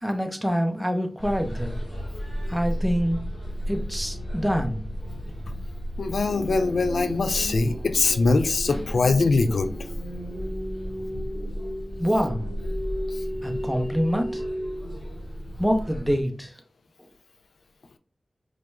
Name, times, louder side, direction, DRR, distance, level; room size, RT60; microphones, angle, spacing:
voice 1, 0.0-1.8 2.5-3.2 3.7-4.8 12.0-12.5 13.4-14.4 15.6-16.5, equal, 5° right, 4 dB, 0.8 m, -25 dB
sound 1, 1.2-16.2, equal, 70° left, 1.6 m, -34 dB
voice 2, 6.0-9.7, left 3 dB, 85° left, 9 dB, 0.3 m, -22 dB
sound 2, 6.2-15.2, equal, 15° left, 1.9 m, -36 dB
4.7 x 3.2 x 2.3 m, 0.41 s
wide cardioid pair, 60°, 0 cm